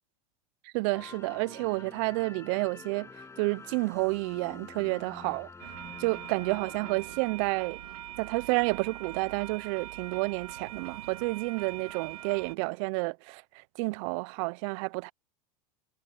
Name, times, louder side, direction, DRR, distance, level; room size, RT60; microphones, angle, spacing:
voice 1, 0.6-3.1 3.4-5.5 6.0-7.8 8.2-15.1, right 28 dB, 60° right, 0.5 m, -30 dB
sound 1, 0.9-7.5, left 4 dB, 15° left, 6.9 m, -48 dB
sound 2, 5.6-12.5, right 13 dB, 85° right, 3.5 m, -43 dB
supercardioid pair, 120°, 18 cm